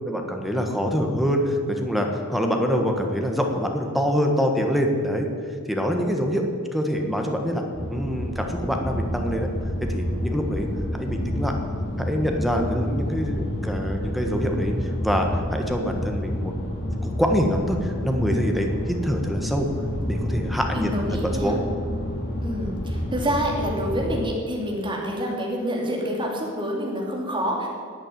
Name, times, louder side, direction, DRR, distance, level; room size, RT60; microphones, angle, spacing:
voice 1, 0.0-5.3 5.7-7.6 7.9-9.5 9.9-10.7 10.9-11.5 12.0-16.5 17.0-19.7 20.1-21.6, equal, ahead, 2 dB, 1.4 m, -25 dB
sound 1, 7.7-24.2, left 1 dB, 45° left, 2.6 m, -29 dB
voice 2, 20.7-21.6 22.4-27.7, equal, 20° right, -2 dB, 2.8 m, -27 dB
11.0 x 8.9 x 9.3 m, 2.2 s
head